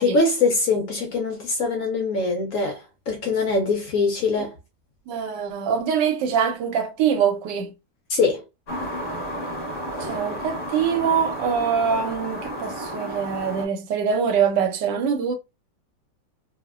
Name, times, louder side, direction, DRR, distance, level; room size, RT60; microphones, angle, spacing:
voice 1, 0.0-4.5 8.1-8.4, left 3 dB, 65° left, 0.8 m, -23 dB
voice 2, 5.1-7.7 10.0-15.3, right 7 dB, 90° right, 1.2 m, -24 dB
sound 1, 8.7-13.7, right 1 dB, 40° left, 0.8 m, -32 dB
2.8 x 2.0 x 2.3 m
omnidirectional pair, 1.8 m